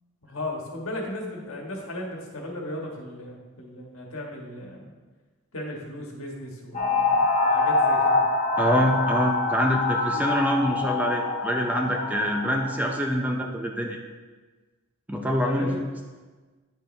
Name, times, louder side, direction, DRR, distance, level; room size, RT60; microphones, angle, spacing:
voice 1, 0.2-4.9 5.5-8.2 15.4-15.8, left 1 dB, 70° left, -1 dB, 1.6 m, -36 dB
sound 1, 6.7-12.9, left 3 dB, 30° left, 0.9 m, -25 dB
voice 2, 8.6-14.0 15.1-15.9, equal, 5° right, 1 dB, 0.5 m, -25 dB
9.5 x 6.7 x 3.3 m, 1.3 s
head